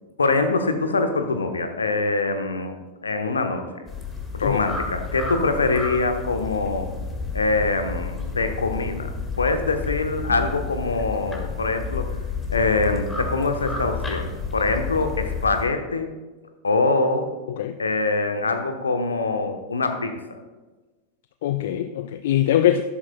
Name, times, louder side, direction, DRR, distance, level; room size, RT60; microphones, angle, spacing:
voice 1, 0.2-3.8 4.3-6.9 7.3-12.2 12.5-16.1 16.6-17.3 17.8-20.4, left 3 dB, 75° left, 7 dB, 0.9 m, -24 dB
sound 1, 3.9-15.7, left 4 dB, 15° left, 1.8 m, -31 dB
voice 2, 21.4-22.8, left 11 dB, 55° left, 11 dB, 0.4 m, -22 dB
12.5 x 11.5 x 2.2 m, 1.2 s
figure-of-eight pair, 90°, 0 cm